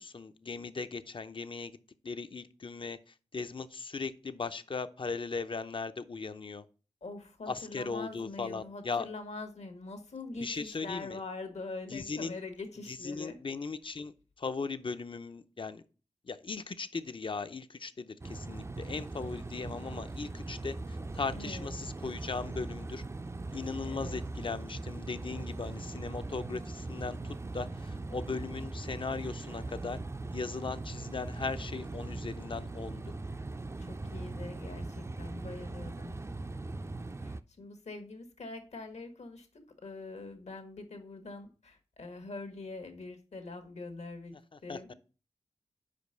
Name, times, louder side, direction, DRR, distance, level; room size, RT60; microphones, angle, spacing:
voice 1, 0.0-1.8 2.0-3.0 3.3-6.7 7.5-9.1 10.4-11.2 11.9-12.4 12.9-15.8 16.2-23.0 23.5-30.0 30.3-33.0 44.5-44.9, left 4 dB, 50° left, 0.6 m, -38 dB
voice 2, 7.0-13.4 21.3-21.7 23.8-24.2 33.8-36.1 37.2-44.4 44.6-44.9, left 3 dB, 75° left, 1.4 m, -44 dB
sound 1, 18.2-37.4, right 2 dB, 25° right, 0.4 m, -40 dB
5.1 x 5.1 x 6.5 m
wide cardioid pair, 70°, 11 cm